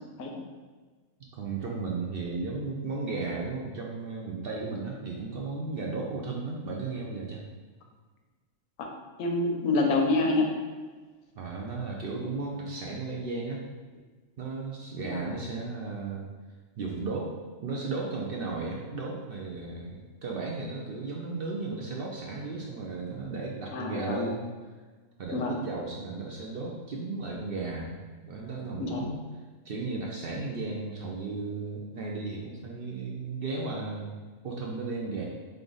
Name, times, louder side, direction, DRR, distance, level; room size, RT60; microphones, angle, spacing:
voice 1, 1.3-7.4 11.4-13.6 14.4-16.3 16.8-17.3 17.6-24.5 25.2-28.0 28.2-29.2 29.6-34.1 34.4-35.2, right 3 dB, 60° right, -2 dB, 0.6 m, -35 dB
voice 2, 9.2-10.6 15.0-15.3 23.7-24.3 25.3-25.6 28.8-29.1, left 2 dB, 85° left, 2 dB, 1.1 m, -27 dB
3.5 x 3.4 x 3.9 m, 1.4 s
omnidirectional pair, 1.4 m